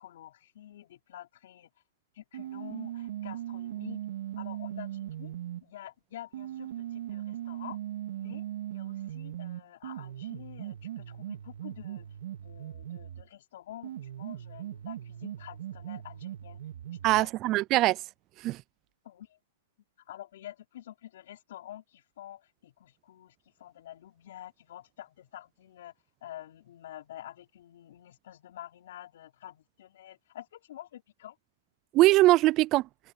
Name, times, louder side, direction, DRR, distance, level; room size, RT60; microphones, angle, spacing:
voice 1, 0.0-1.7 2.1-4.0 4.4-5.3 5.6-7.8 8.1-12.1 12.4-16.6 17.0-17.3 19.0-19.4 20.1-25.9 26.2-31.4, left 12 dB, 65° left, 5.0 m, -48 dB
sound 1, 2.3-5.6 6.3-13.3 13.8-17.3, right 12 dB, 70° right, 3.8 m, -39 dB
voice 2, 17.0-18.0 18.4-18.6 31.9-32.9, right 17 dB, 35° right, 0.5 m, -22 dB
hypercardioid pair, 140°, 0 cm